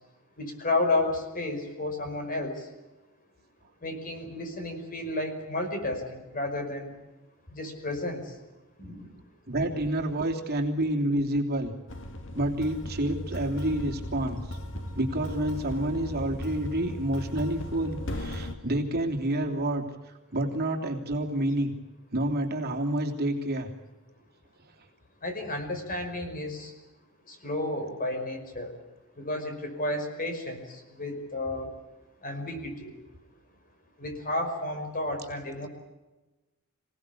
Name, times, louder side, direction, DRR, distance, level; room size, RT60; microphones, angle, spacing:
voice 1, 0.4-2.6 3.8-6.9 7.5-8.2 8.8-9.1 25.2-26.7 27.3-28.7 29.2-31.7 32.2-32.9 34.0-35.7, left 2 dB, 40° left, 5 dB, 5.2 m, -32 dB
voice 2, 9.5-11.7 12.3-14.6 14.9-19.8 20.3-21.7 22.1-23.7, right 1 dB, 45° right, 2 dB, 3.2 m, -28 dB
sound 1, 11.9-18.5, left 1 dB, 60° left, 2.2 m, -37 dB
26.5 x 18.0 x 8.5 m, 1.1 s
head